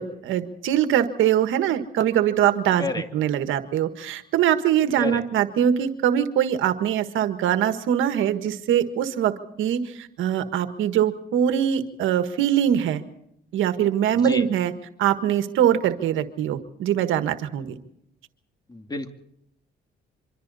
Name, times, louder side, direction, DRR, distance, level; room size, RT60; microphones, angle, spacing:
voice 1, 0.0-2.9 3.1-13.0 13.5-14.7 15.0-17.8, right 10 dB, 85° right, 9 dB, 1.6 m, -22 dB
voice 2, 14.1-14.4 18.7-19.1, left 3 dB, 20° left, 6 dB, 2.4 m, -30 dB
26.0 x 25.0 x 4.2 m, 0.74 s
cardioid pair, 90°, 20 cm